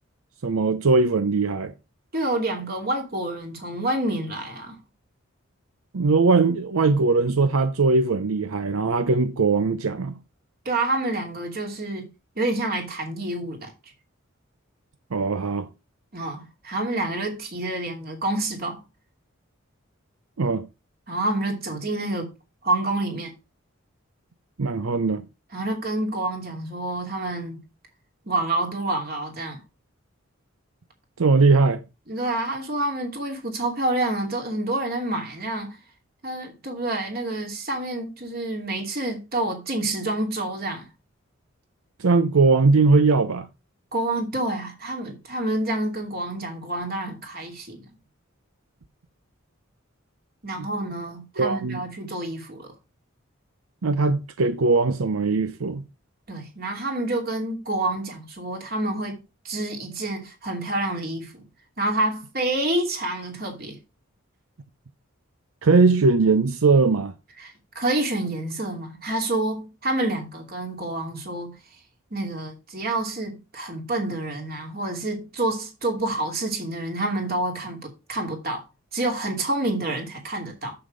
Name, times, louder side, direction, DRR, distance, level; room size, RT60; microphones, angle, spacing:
voice 1, 0.4-1.7 5.9-10.2 15.1-15.7 20.4-20.7 24.6-25.2 31.2-31.8 42.0-43.5 50.6-50.7 51.4-51.8 53.8-55.8 65.6-67.1, right 3 dB, 85° right, 0.6 m, -20 dB
voice 2, 2.1-4.8 10.6-12.1 12.4-13.7 16.1-18.8 21.1-22.3 22.6-23.3 25.5-27.6 28.3-29.6 32.1-35.8 36.2-40.8 43.9-47.9 50.4-52.7 56.3-61.5 61.8-63.8 67.4-71.5 72.1-78.6 78.9-80.7, right 2 dB, 45° right, 2.7 m, -28 dB
7.1 x 6.8 x 5.1 m
head